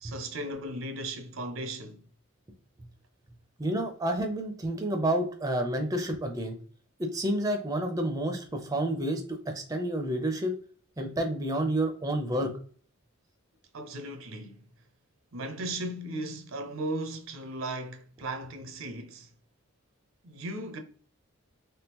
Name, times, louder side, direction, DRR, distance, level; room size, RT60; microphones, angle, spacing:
voice 1, 0.0-2.0 13.7-14.7 15.3-19.3 20.2-20.8, right 1 dB, 65° right, 0.6 m, -36 dB
voice 2, 3.6-6.6 7.0-10.5 11.0-12.5, right 1 dB, 15° right, 0.6 m, -29 dB
3.6 x 3.2 x 2.9 m
head